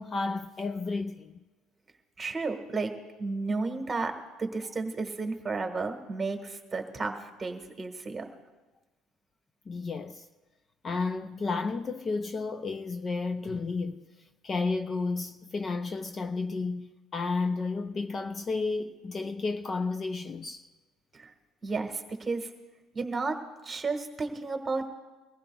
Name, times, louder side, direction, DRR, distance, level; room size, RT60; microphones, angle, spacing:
voice 1, 0.0-1.3 9.7-10.3 10.8-14.0 14.4-20.6, left 3 dB, 30° left, 0.5 m, -32 dB
voice 2, 2.2-2.9 3.2-4.1 4.4-8.3 21.1-21.3 21.6-22.5 22.9-23.4 23.6-24.9, right 3 dB, 20° right, 1.5 m, -32 dB
22.5 x 15.5 x 2.4 m
cardioid pair, 130°, 0 cm